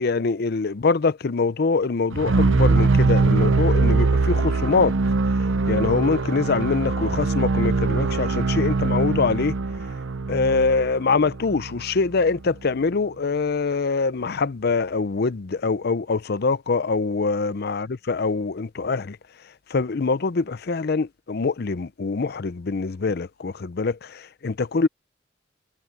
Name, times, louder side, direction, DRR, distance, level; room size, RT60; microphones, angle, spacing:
voice 1, 0.0-5.0 5.7-9.5 10.3-19.2 19.7-24.9, left 4 dB, 55° left, 0.6 m, -24 dB
sound 1, 2.1-12.1, right 3 dB, 85° right, 0.7 m, -22 dB
head